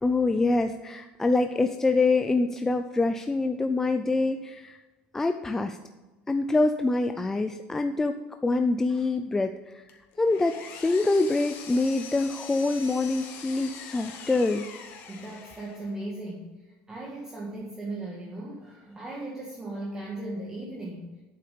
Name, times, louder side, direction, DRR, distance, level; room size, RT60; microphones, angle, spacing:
voice 1, 0.0-4.8 5.1-5.8 6.3-14.7, left 3 dB, 10° left, 7 dB, 0.4 m, -25 dB
Power tool, 9.9-16.0, left 6 dB, 55° left, 1.7 m, -43 dB
voice 2, 15.1-21.1, right 2 dB, 15° right, -3 dB, 1.7 m, -37 dB
8.6 x 7.5 x 6.8 m, 1.2 s
cardioid pair, 150°, 4 cm